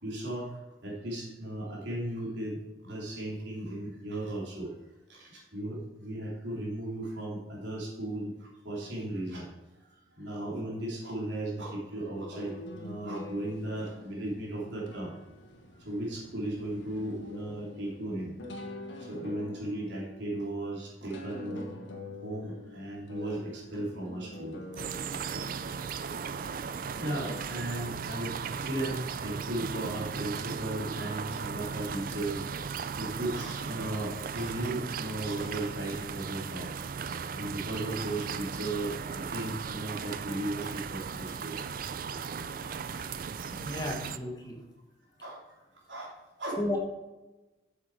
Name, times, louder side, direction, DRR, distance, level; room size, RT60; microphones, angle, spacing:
voice 1, 0.0-4.7 5.1-9.5 10.1-15.1 15.8-18.3 19.0-21.7 22.2-24.8 25.3-25.4 26.4-26.5 27.0-32.4 33.0-36.7 37.3-41.5 45.2-45.6 45.9-46.1 46.4-46.6, right 1 dB, 70° right, -4 dB, 3.1 m, -36 dB
sound 1, 12.1-27.4, left 1 dB, 85° left, 1.3 m, -46 dB
sound 2, 24.8-44.2, right 6 dB, 50° right, 0.4 m, -37 dB
voice 2, 43.5-44.6 46.6-46.8, left 1 dB, 20° left, 0 dB, 1.2 m, -34 dB
8.0 x 7.4 x 4.7 m, 1.1 s
head